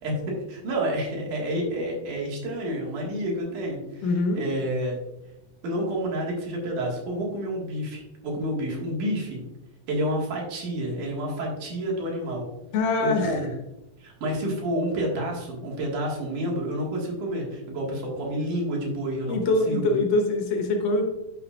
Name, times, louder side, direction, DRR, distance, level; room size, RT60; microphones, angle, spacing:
voice 1, 0.0-5.0 5.6-9.4 9.9-12.4 13.0-13.5 14.0-19.9, right 1 dB, 65° right, -2 dB, 3.1 m, -29 dB
voice 2, 4.0-4.5 12.7-13.4 19.3-21.0, left 2 dB, 70° left, 3 dB, 2.4 m, -23 dB
10.5 x 5.8 x 2.4 m, 0.96 s
omnidirectional pair, 4.0 m